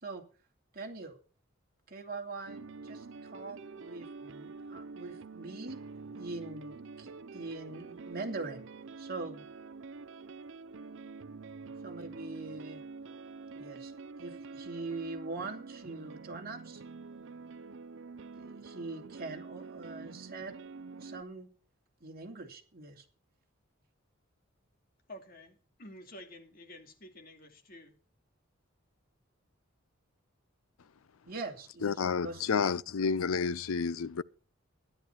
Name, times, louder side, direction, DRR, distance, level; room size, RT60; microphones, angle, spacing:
voice 1, 0.7-1.2 1.9-5.8 6.2-8.7 9.0-9.4 11.8-12.8 13.5-13.9 14.2-16.8 18.3-20.5 21.0-21.5 22.0-23.0 31.2-31.9 32.2-32.4, right 3 dB, 45° right, 2.8 m, -42 dB
sound 1, 2.5-21.2, right 4 dB, 60° right, 0.5 m, -47 dB
voice 2, 25.1-28.0, left 1 dB, 45° left, 2.4 m, -50 dB
voice 3, 31.8-34.2, left 5 dB, 85° left, 0.5 m, -30 dB
12.5 x 11.0 x 4.5 m
head